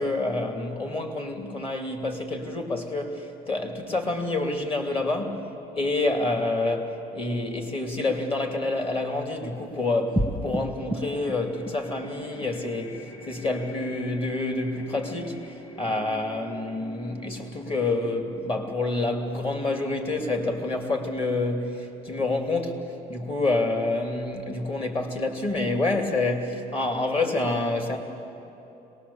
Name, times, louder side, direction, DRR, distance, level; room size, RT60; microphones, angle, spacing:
voice 1, 0.0-13.0 13.3-22.8 23.1-28.0, left 2 dB, 35° left, 4 dB, 2.7 m, -28 dB
sound 1, 10.1-20.8, equal, 20° left, 1.7 m, -37 dB
24.0 x 19.5 x 7.1 m, 2.9 s
cardioid pair, 110°, 17 cm